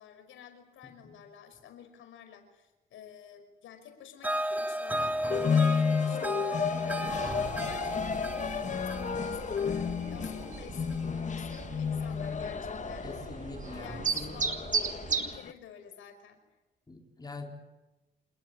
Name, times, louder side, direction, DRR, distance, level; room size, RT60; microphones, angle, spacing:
voice 1, 0.0-6.2 6.9-11.1 11.4-13.1 13.7-14.6 15.1-16.4, left 8 dB, 80° left, 7 dB, 5.4 m, -50 dB
sound 1, 4.2-11.4, right 1 dB, 10° right, 2.5 m, -35 dB
sound 2, 5.3-15.5, left 6 dB, 40° left, 1.2 m, -32 dB
sound 3, 7.1-15.4, right 5 dB, 40° right, 2.7 m, -37 dB
voice 2, 13.0-14.5 16.9-17.6, left 3 dB, 20° left, 2 dB, 4.1 m, -44 dB
29.0 x 19.0 x 9.9 m, 1.1 s
cardioid pair, 90°, 20 cm